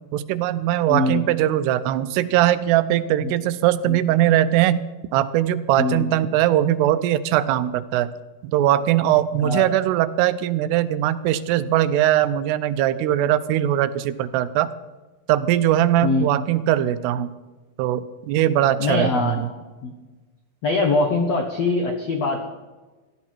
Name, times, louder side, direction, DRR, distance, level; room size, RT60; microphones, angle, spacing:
voice 1, 0.1-4.8 5.1-8.1 8.4-14.7 15.3-17.3 17.8-19.5, right 12 dB, 85° right, 13 dB, 2.7 m, -20 dB
voice 2, 0.9-1.2 3.2-3.3 3.9-4.0 5.8-6.1 9.4-9.7 16.0-16.3 18.8-19.4 19.8-19.9 20.6-22.4, left 3 dB, 75° left, 4 dB, 1.4 m, -22 dB
17.0 x 13.5 x 4.4 m, 1.2 s
omnidirectional pair, 4.7 m